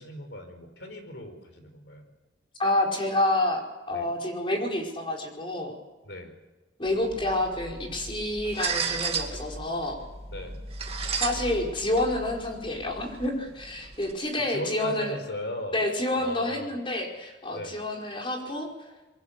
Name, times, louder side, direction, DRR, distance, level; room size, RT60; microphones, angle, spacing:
voice 1, 0.0-2.1 3.9-4.1 6.0-6.4 10.3-10.6 14.5-15.8 16.2-16.8 17.5-17.8, left 1 dB, 75° left, 7 dB, 5.0 m, -38 dB
voice 2, 2.6-5.7 6.8-10.0 11.1-15.2 15.7-18.7, left 1 dB, 30° left, 0 dB, 5.0 m, -28 dB
sound 1, 6.9-14.1, right 5 dB, 35° right, 2.3 m, -35 dB
25.5 x 23.0 x 6.9 m, 1.2 s
head